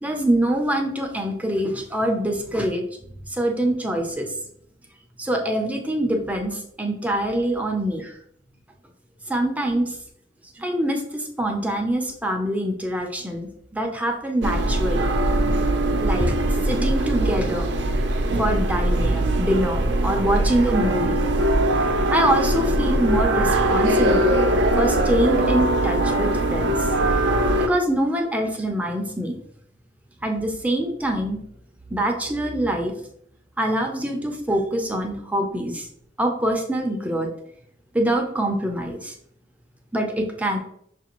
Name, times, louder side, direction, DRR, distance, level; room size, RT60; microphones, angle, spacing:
voice 1, 0.0-2.8 3.3-4.3 5.2-8.1 9.3-10.0 10.6-15.1 15.4-15.6 16.0-16.3 16.6-17.7 18.4-21.2 22.1-24.3 24.8-26.9 27.7-29.4 30.2-31.4 31.9-32.9 33.6-35.9 36.2-37.3 37.9-39.1 39.9-40.6, right 1 dB, 10° right, 2 dB, 0.5 m, -24 dB
sound 1, 14.4-27.7, right 1 dB, 80° right, 0.5 m, -21 dB
5.9 x 2.5 x 3.0 m, 0.70 s
head